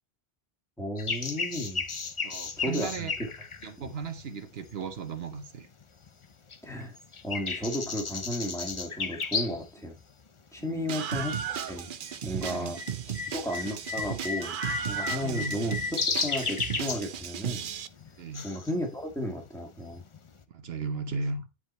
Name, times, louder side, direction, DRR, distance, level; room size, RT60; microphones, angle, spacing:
voice 1, 0.8-1.8 2.6-3.3 3.8-3.9 6.6-7.0 7.2-10.0 10.5-11.9 12.2-12.8 13.3-14.6 14.9-17.6 18.4-20.0, equal, 5° left, 1.9 m, -34 dB
sound 1, 1.0-4.9 5.4-6.3 6.5-9.7 10.0-10.1 10.8-11.1 11.4-20.4, left 5 dB, 35° left, 0.7 m, -34 dB
voice 2, 2.2-3.1 3.6-5.7 10.6-10.9 12.5-12.7 15.1-15.5 18.2-18.5 20.5-21.5, right 5 dB, 75° right, 1.1 m, -36 dB
Screaming, 10.9-17.9, right 8 dB, 60° right, 0.8 m, -35 dB
9.7 x 4.8 x 4.2 m
omnidirectional pair, 1.0 m